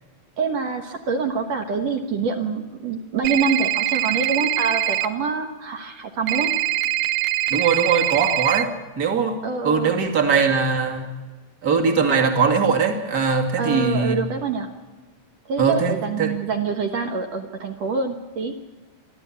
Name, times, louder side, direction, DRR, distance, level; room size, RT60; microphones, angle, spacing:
voice 1, 0.4-6.5 9.4-9.9 13.6-14.7 15.5-18.5, right 5 dB, 65° right, 4 dB, 2.4 m, -25 dB
sound 1, 3.2-5.1 6.3-8.6, right 14 dB, 90° right, 1.1 m, -23 dB
voice 2, 7.5-9.4 9.6-11.1 11.6-14.2 15.6-16.3, right 5 dB, 30° right, 4 dB, 2.5 m, -21 dB
25.0 x 13.5 x 8.6 m, 1.2 s
omnidirectional pair, 3.4 m